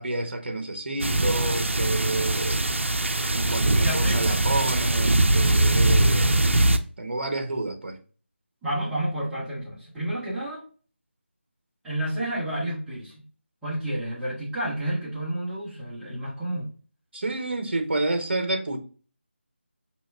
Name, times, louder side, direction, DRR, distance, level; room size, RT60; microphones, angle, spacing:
voice 1, 0.0-2.6 3.3-6.5 7.0-8.0 17.1-18.8, right 2 dB, 55° right, 0.9 m, -29 dB
sound 1, 1.0-6.8, right 1 dB, 75° right, 0.5 m, -22 dB
voice 2, 3.7-4.4 8.6-10.6 11.8-13.3 13.6-16.7, right 1 dB, 5° right, 1.0 m, -30 dB
5.0 x 2.9 x 2.3 m
figure-of-eight pair, 160°, 7 cm